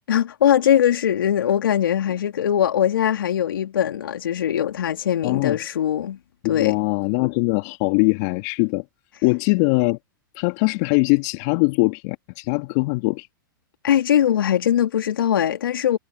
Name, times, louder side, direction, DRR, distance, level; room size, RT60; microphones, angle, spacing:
voice 1, 0.1-6.2 6.5-6.8 13.8-16.0, left 10 dB, 75° left, 2.8 m, -21 dB
voice 2, 5.2-5.6 6.4-8.8 9.2-10.0 10.4-13.3, left 29 dB, 50° left, 1.9 m, -21 dB
hypercardioid pair, 105°, 12 cm